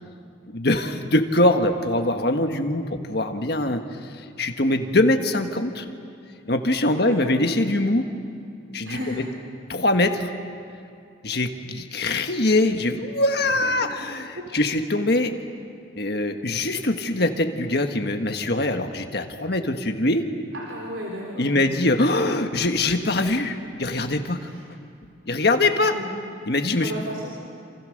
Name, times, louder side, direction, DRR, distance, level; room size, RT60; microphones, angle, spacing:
voice 1, 0.5-3.8 4.4-5.9 6.5-8.1 8.7-9.0 9.7-10.3 11.2-15.3 15.9-20.2 21.4-24.4 25.3-25.9 26.5-26.9, left 2 dB, 55° left, 5 dB, 1.6 m, -23 dB
voice 2, 6.9-7.3 8.8-9.2 13.4-13.9 14.4-14.5 15.1-15.2 20.5-21.6 24.4-24.5 25.8-26.1 26.8-27.3, equal, 70° right, -2 dB, 3.7 m, -34 dB
28.5 x 27.5 x 6.6 m, 2.5 s
head